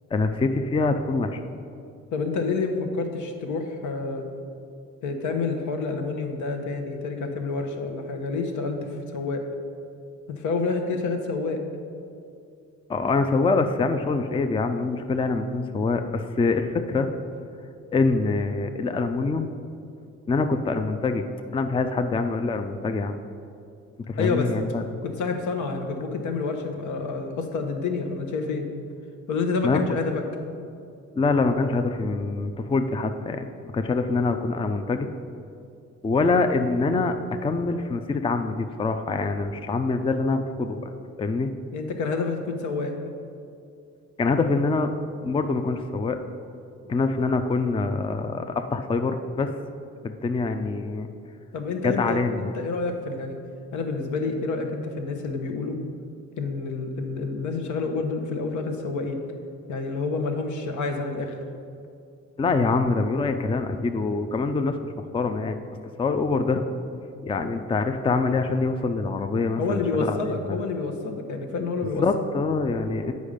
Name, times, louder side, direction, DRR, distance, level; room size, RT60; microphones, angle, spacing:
voice 1, 0.1-1.4 12.9-17.1 17.9-19.5 20.3-21.3 21.5-23.2 24.1-24.8 29.6-29.8 31.2-35.1 36.0-37.1 37.4-40.9 41.2-41.5 44.2-44.9 45.2-46.2 46.8-49.5 50.0-51.1 51.8-52.4 62.4-65.6 66.0-66.6 67.2-70.6 72.0-73.1, left 3 dB, 20° left, 8 dB, 0.4 m, -25 dB
voice 2, 2.1-4.2 5.0-8.8 9.1-9.4 10.3-11.6 24.2-24.5 25.0-28.6 29.3-30.2 41.7-42.9 51.5-53.4 53.7-55.8 56.4-59.2 59.7-61.4 69.6-72.0, left 4 dB, 75° left, 4 dB, 1.0 m, -28 dB
8.2 x 5.3 x 5.0 m, 2.5 s
cardioid pair, 90°, 30 cm